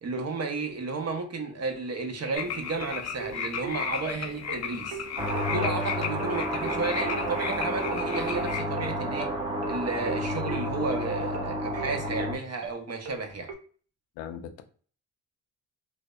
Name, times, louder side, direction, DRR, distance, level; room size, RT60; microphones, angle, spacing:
voice 1, 0.0-5.0 5.5-9.3 9.7-13.5, right 3 dB, 40° right, 0.8 m, -33 dB
sound 1, 2.3-8.6, left 7 dB, 40° left, 0.6 m, -35 dB
sound 2, 2.3-13.5, right 6 dB, 70° right, 0.7 m, -39 dB
sound 3, 5.2-12.4, equal, 10° right, 0.9 m, -30 dB
voice 2, 14.2-14.6, left 9 dB, 85° left, 0.6 m, -38 dB
2.6 x 2.1 x 2.3 m
supercardioid pair, 55°, 40 cm